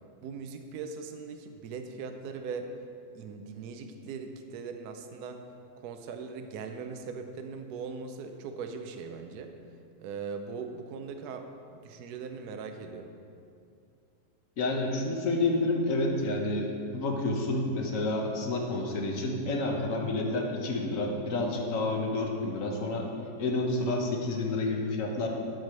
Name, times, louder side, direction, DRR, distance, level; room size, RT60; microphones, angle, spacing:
voice 1, 0.2-2.7 3.1-5.4 5.8-9.5 10.0-13.1, right 5 dB, 65° right, 6 dB, 1.1 m, -40 dB
voice 2, 14.6-23.1 23.4-25.3, left 2 dB, 50° left, 1 dB, 1.3 m, -29 dB
10.5 x 4.9 x 6.1 m, 2.5 s
omnidirectional pair, 2.0 m